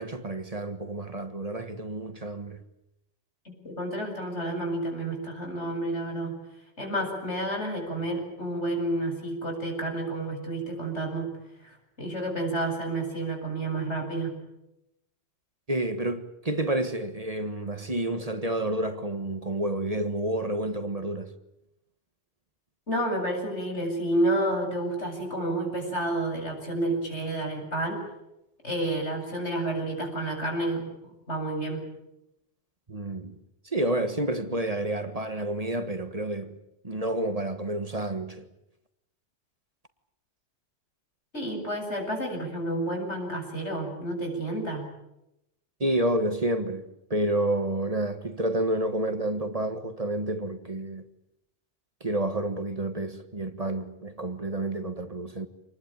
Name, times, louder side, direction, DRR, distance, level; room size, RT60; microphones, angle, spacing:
voice 1, 0.0-2.6 15.7-21.3 32.9-33.4 33.6-36.6 36.8-38.5 45.8-51.0 52.0-55.5, right 1 dB, 35° right, 1.6 m, -29 dB
voice 2, 3.4-6.4 6.8-14.4 22.9-28.0 28.6-30.9 31.3-31.8 41.3-44.9, right 1 dB, 80° left, 8.1 m, -30 dB
27.0 x 20.5 x 9.1 m
omnidirectional pair, 1.2 m